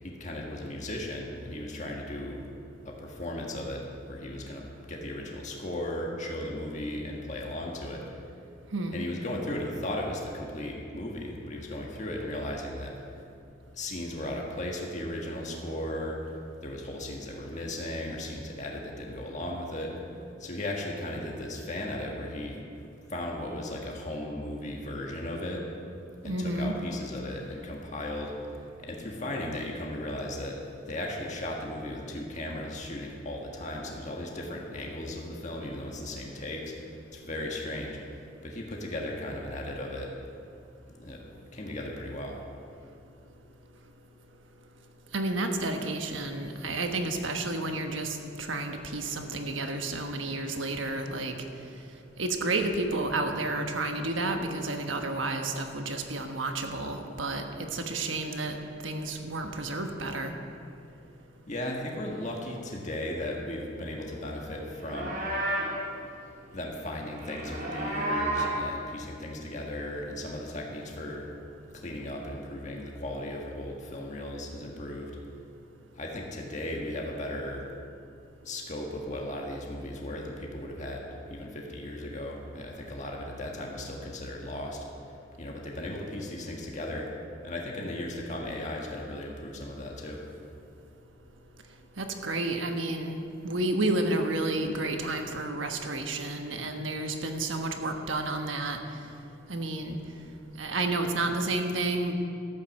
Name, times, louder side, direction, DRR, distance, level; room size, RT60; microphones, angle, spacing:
voice 1, 0.0-2.5 2.8-8.0 8.9-12.9 13.7-16.2 16.6-19.9 20.4-22.6 23.1-25.6 26.2-28.3 28.8-40.1 40.9-41.2 41.5-42.4 61.5-65.2 66.5-71.2 71.7-75.1 75.9-77.7 78.4-84.8 85.4-87.1 87.4-90.2, left 1 dB, 40° left, -1 dB, 1.6 m, -36 dB
voice 2, 26.2-26.7 45.1-51.3 52.2-57.4 57.7-58.5 58.8-60.3 92.0-98.8 99.5-100.0 100.6-102.1, right 2 dB, 85° right, 4 dB, 1.3 m, -31 dB
Livestock farm animals working animals, 64.7-65.8 67.1-68.6, right 1 dB, 55° right, 2.9 m, -31 dB
13.5 x 8.9 x 6.5 m, 2.5 s
head